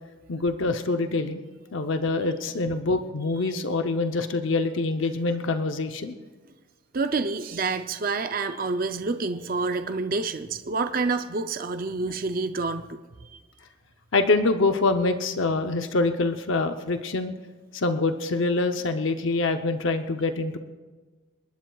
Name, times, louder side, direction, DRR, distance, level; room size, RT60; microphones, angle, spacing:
voice 1, 0.3-1.4 1.7-6.2 14.1-17.3 17.7-20.6, left 3 dB, 70° left, 7 dB, 0.7 m, -25 dB
voice 2, 6.9-13.4, right 3 dB, 45° right, 8 dB, 0.5 m, -28 dB
29.5 x 12.0 x 2.3 m, 1.4 s
head